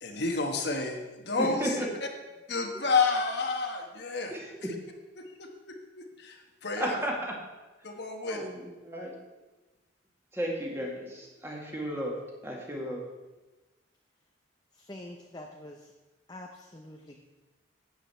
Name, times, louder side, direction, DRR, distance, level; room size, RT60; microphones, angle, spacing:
voice 1, 0.0-1.8 2.5-4.3 5.2-7.0 7.8-8.4, left 4 dB, 55° left, 3 dB, 1.3 m, -30 dB
voice 2, 1.4-1.9 4.3-4.7 6.8-7.4 8.3-9.2 10.3-13.0, equal, 10° right, -1 dB, 1.9 m, -34 dB
voice 3, 14.9-15.8 16.3-17.2, left 1 dB, 20° left, 1 dB, 0.7 m, -45 dB
12.0 x 8.9 x 4.4 m, 1.1 s
head